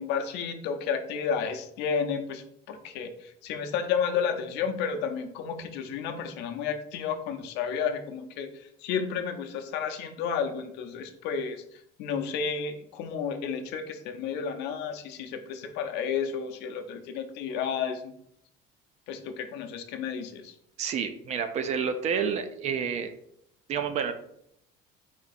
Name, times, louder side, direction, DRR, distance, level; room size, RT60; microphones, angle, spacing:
voice 1, 0.0-11.6 12.0-18.1 19.1-20.5, left 6 dB, 65° left, 6 dB, 0.6 m, -32 dB
voice 2, 20.8-23.1 23.7-24.1, right 6 dB, 35° right, 8 dB, 0.4 m, -29 dB
4.5 x 2.7 x 4.0 m, 0.72 s
cardioid pair, 175°, 19 cm